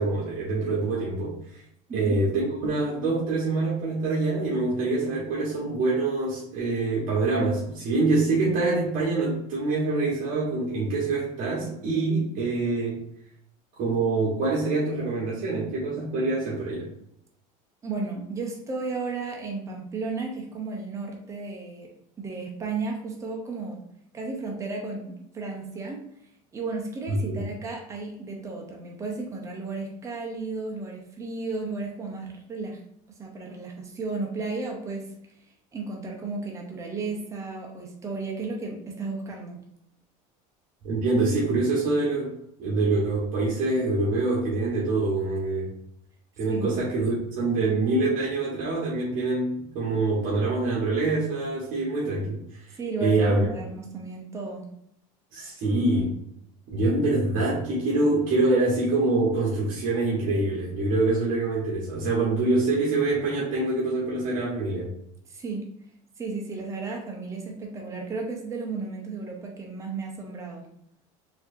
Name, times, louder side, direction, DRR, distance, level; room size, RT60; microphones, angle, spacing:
voice 1, 0.0-1.6 1.9-13.0 13.8-16.9 27.1-27.4 40.8-42.3 42.6-45.7 46.4-52.7 53.0-53.4 55.3-56.2 56.7-64.9, right 2 dB, 55° right, -6 dB, 1.2 m, -25 dB
voice 2, 1.9-2.2 17.8-21.9 22.2-23.8 24.1-26.0 26.5-32.8 33.2-35.1 35.7-39.6 46.5-46.7 52.8-54.6 65.3-65.7 66.2-70.7, right 3 dB, 15° right, 0 dB, 0.7 m, -34 dB
4.2 x 2.7 x 2.5 m, 0.75 s
cardioid pair, 135°, 17 cm